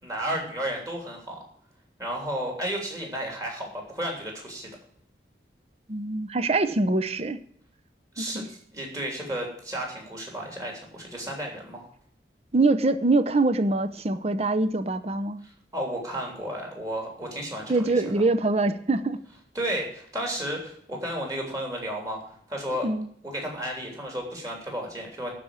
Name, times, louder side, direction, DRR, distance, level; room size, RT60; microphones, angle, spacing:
voice 1, 0.0-1.4 2.0-4.7 8.1-11.8 15.4-18.2 19.5-22.2 22.5-22.9 23.2-25.3, right 1 dB, 20° right, 0 dB, 3.1 m, -33 dB
voice 2, 5.9-7.4 8.2-8.5 12.5-15.4 17.7-19.2 22.8-23.1, right 2 dB, 35° right, 12 dB, 0.6 m, -24 dB
12.0 x 4.9 x 8.7 m, 0.64 s
head